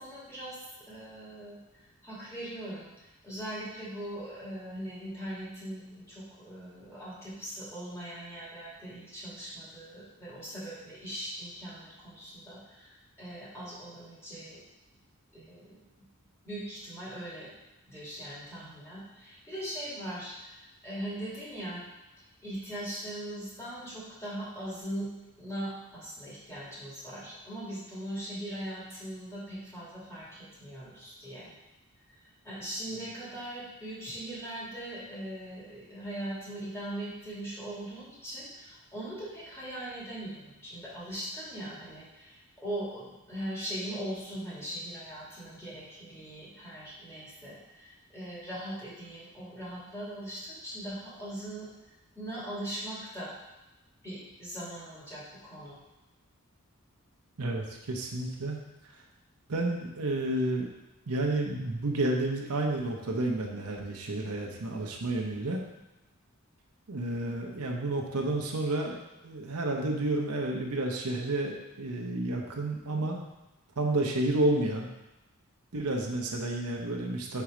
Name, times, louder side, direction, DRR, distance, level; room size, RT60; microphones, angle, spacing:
voice 1, 0.0-1.6 2.0-14.6 15.3-15.8 16.4-17.5 17.9-21.8 22.4-25.1 25.4-31.5 32.1-51.7 52.2-53.3 54.0-55.8, right 1 dB, 15° left, -9 dB, 2.2 m, -40 dB
voice 2, 57.4-58.6 59.5-60.7 61.1-65.6 66.9-68.9 69.2-73.2 73.8-74.9 75.7-77.4, right 2 dB, 85° right, 1 dB, 0.8 m, -30 dB
4.6 x 4.1 x 4.9 m, 1.0 s
head